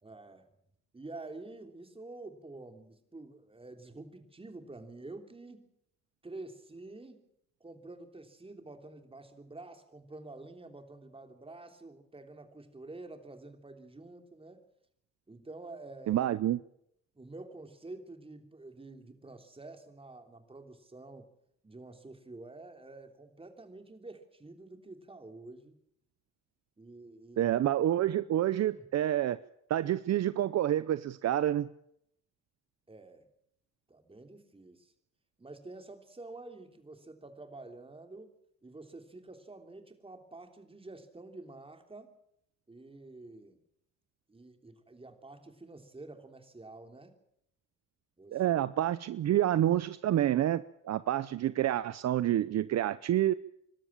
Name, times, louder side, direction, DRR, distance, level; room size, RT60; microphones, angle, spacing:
voice 1, 0.0-0.5 0.9-5.7 6.2-7.2 7.6-14.6 15.3-16.4 17.1-21.3 21.6-25.8 26.8-27.6 28.7-28.8 32.9-33.3 33.9-34.9 35.4-38.3 38.6-42.1 42.7-43.6 44.3-47.1 48.2-48.4, right 2 dB, 20° right, 6 dB, 3.2 m, -48 dB
voice 2, 16.1-16.6 27.4-29.4 29.7-31.7 48.3-53.3, right 12 dB, 60° right, 15 dB, 0.7 m, -28 dB
25.0 x 12.5 x 8.8 m, 0.76 s
cardioid pair, 90°, 30 cm